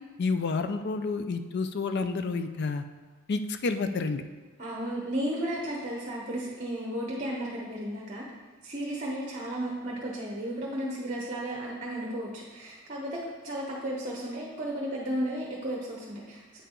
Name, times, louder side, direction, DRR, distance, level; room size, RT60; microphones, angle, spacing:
voice 1, 0.2-2.8 3.3-4.2, left 4 dB, 50° left, 9 dB, 0.4 m, -29 dB
voice 2, 4.6-8.3 8.6-16.6, right 1 dB, 35° right, -3 dB, 0.9 m, -34 dB
8.1 x 4.7 x 3.8 m, 1.3 s
head